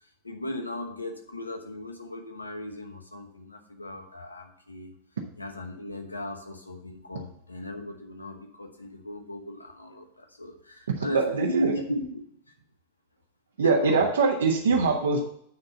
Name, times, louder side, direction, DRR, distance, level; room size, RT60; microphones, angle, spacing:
voice 1, 0.2-4.9 5.3-12.2 13.6-14.1, left 1 dB, 80° left, 5 dB, 1.1 m, -36 dB
voice 2, 11.0-11.8 13.6-15.2, right 4 dB, 65° right, -1 dB, 1.0 m, -23 dB
9.2 x 3.7 x 6.8 m, 0.68 s
figure-of-eight pair, 90°, 0 cm